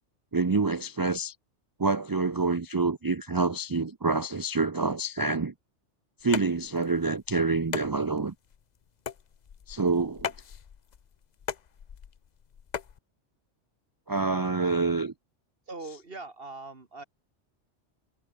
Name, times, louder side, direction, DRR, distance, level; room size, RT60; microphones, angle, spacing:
voice 1, 0.3-1.3 1.8-5.5 6.2-8.3 9.7-10.3 14.1-15.1, right 3 dB, 30° right, 0.4 m, -27 dB
sound 1, 6.2-13.0, left 7 dB, 45° left, 0.7 m, -39 dB
voice 2, 15.7-17.0, right 3 dB, 50° right, 2.5 m, -41 dB
omnidirectional pair, 1.3 m